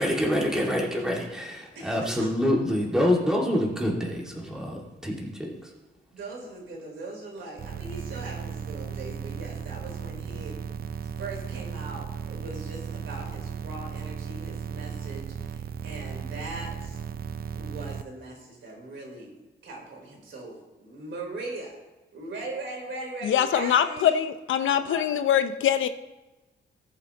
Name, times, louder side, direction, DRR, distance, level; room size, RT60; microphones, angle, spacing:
voice 1, 0.0-5.7, left 1 dB, 5° right, -3 dB, 2.1 m, -26 dB
voice 2, 1.7-2.3 6.1-10.6 11.2-17.0 17.5-19.4 19.6-21.8 22.1-24.2 24.6-25.2, right 2 dB, 75° right, -1 dB, 3.7 m, -40 dB
sound 1, 7.6-18.0, right 7 dB, 50° right, 0.5 m, -36 dB
voice 3, 23.2-25.9, left 9 dB, 85° left, 10 dB, 0.7 m, -23 dB
18.5 x 7.4 x 2.9 m, 1.1 s
wide cardioid pair, 150°, 20 cm